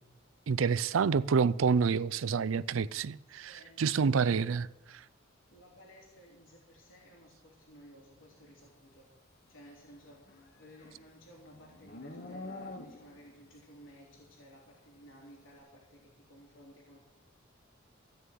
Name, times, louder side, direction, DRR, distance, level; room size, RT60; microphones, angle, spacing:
voice 1, 0.5-4.7, right 5 dB, 80° right, 0.4 m, -28 dB
voice 2, 3.4-4.6 5.5-9.1 9.5-17.0, equal, 80° left, 3.4 m, -56 dB
Livestock farm animals working animals, 10.1-13.3, left 2 dB, 50° left, 1.4 m, -46 dB
14.5 x 6.7 x 9.2 m
head